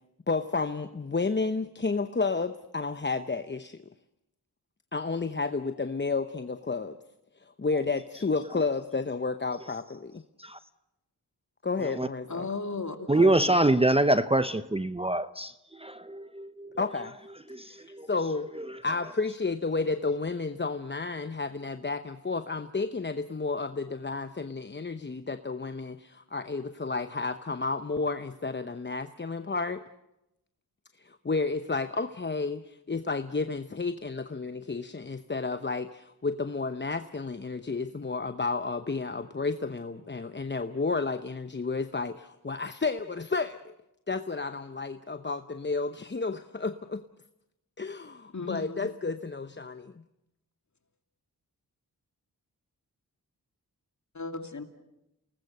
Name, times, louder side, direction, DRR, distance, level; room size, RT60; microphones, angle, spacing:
voice 1, 0.3-3.8 4.9-7.0 7.4-10.2 11.6-12.6 16.8-17.1 17.7-18.5 18.8-29.8 31.0-43.6 44.1-47.0 47.8-49.9, left 4 dB, 30° left, 0.9 m, -31 dB
voice 2, 12.3-13.6 48.3-48.9 54.1-54.6, left 4 dB, 50° left, 2.6 m, -35 dB
voice 3, 13.1-16.8 17.5-18.1 18.5-18.8, right 1 dB, 15° right, 0.7 m, -26 dB
29.0 x 19.5 x 6.7 m
cardioid pair, 55°, 38 cm